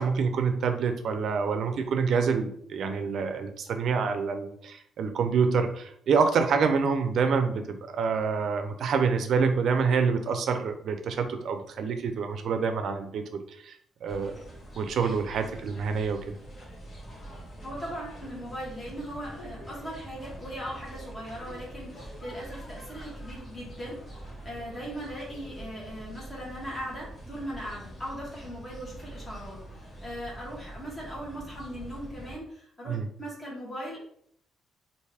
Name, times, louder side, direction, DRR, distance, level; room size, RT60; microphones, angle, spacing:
voice 1, 0.0-13.8 14.0-14.3 14.8-16.3 32.9-33.1, right 5 dB, 70° right, 7 dB, 0.5 m, -27 dB
sound 1, 14.1-32.4, right 1 dB, 35° left, 1.4 m, -44 dB
voice 2, 17.6-34.0, equal, 20° left, -4 dB, 1.5 m, -39 dB
3.3 x 2.6 x 3.4 m, 0.65 s
cardioid pair, 90°, 0 cm